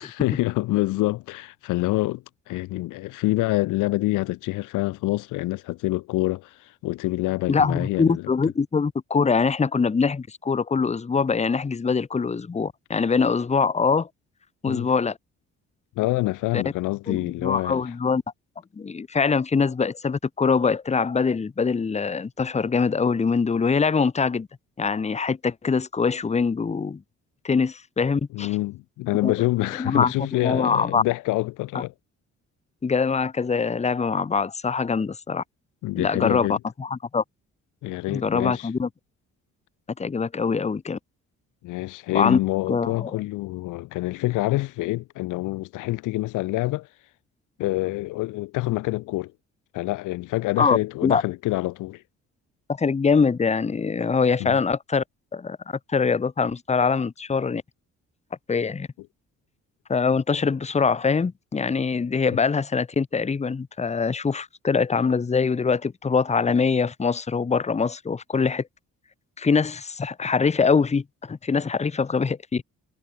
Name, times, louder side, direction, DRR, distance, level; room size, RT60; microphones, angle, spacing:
voice 1, 0.0-8.3 14.7-14.9 16.0-17.8 28.3-31.9 35.8-36.6 37.8-38.7 41.6-46.9 47.6-49.3 49.7-52.0 54.4-54.6, left 19 dB, 90° left, 0.7 m, -26 dB
voice 2, 7.5-14.1 14.6-15.2 16.5-16.6 17.1-18.2 18.8-24.5 24.8-27.0 27.4-28.5 29.2-29.3 29.8-31.0 31.7-31.8 32.8-35.4 36.0-37.2 38.1-38.9 40.0-41.0 42.1-42.4 42.7-43.1 50.6-51.2 52.7-55.0 55.3-57.6 58.5-58.9 59.9-68.7 69.4-72.6, left 5 dB, 20° left, 0.9 m, -23 dB
cardioid pair, 90°, 30 cm